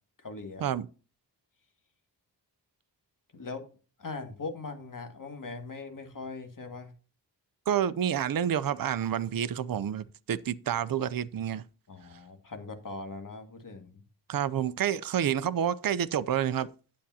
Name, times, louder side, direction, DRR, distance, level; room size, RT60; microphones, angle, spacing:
voice 1, 0.2-0.6 3.3-3.7 4.0-6.9 11.9-14.0, left 3 dB, 50° left, 2.0 m, -40 dB
voice 2, 7.7-11.6 14.3-16.7, right 9 dB, 55° right, 0.5 m, -29 dB
10.0 x 8.5 x 2.8 m
wide cardioid pair, 135°, 42 cm